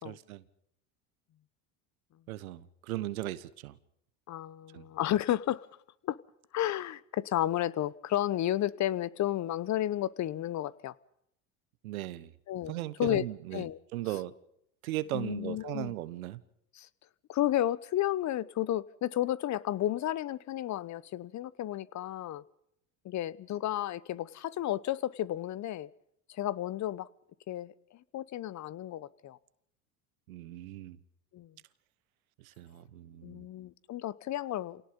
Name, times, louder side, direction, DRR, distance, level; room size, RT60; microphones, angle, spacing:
voice 1, 0.0-0.4 2.3-3.8 4.7-4.8 11.8-12.3 12.7-14.3 14.8-16.4 30.3-31.0 32.4-33.4, right 15 dB, 85° right, 1.3 m, -37 dB
voice 2, 4.3-5.7 6.0-6.2 6.5-10.9 12.5-13.3 13.5-13.8 15.1-15.9 16.7-16.9 17.3-22.4 23.0-25.9 26.3-27.1 27.5-27.7 28.1-29.4 31.3-31.5 33.2-34.8, left 13 dB, 40° left, 1.0 m, -32 dB
27.5 x 18.0 x 5.3 m
hypercardioid pair, 90°, 41 cm